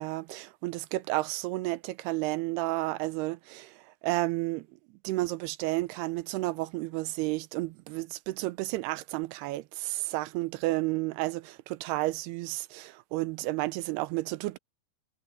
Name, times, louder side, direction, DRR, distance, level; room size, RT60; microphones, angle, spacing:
voice 1, 0.0-4.7 5.0-14.6, right 19 dB, 85° right, 2.7 m, -32 dB
omnidirectional pair, 4.6 m